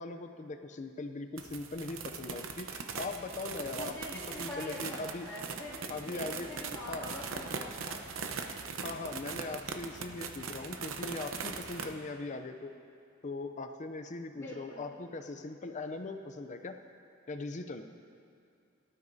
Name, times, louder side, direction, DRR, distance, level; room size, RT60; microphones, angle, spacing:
voice 1, 0.0-5.3 5.9-6.5 6.9-7.1 8.8-12.7 13.2-16.8 17.3-17.8, left 3 dB, 35° left, 7 dB, 0.5 m, -40 dB
sound 1, 1.4-11.9, right 5 dB, 70° right, 0.8 m, -40 dB
voice 2, 3.8-8.4 14.3-14.8, left 1 dB, 15° left, -9 dB, 2.6 m, -44 dB
18.0 x 12.5 x 2.7 m, 2.3 s
head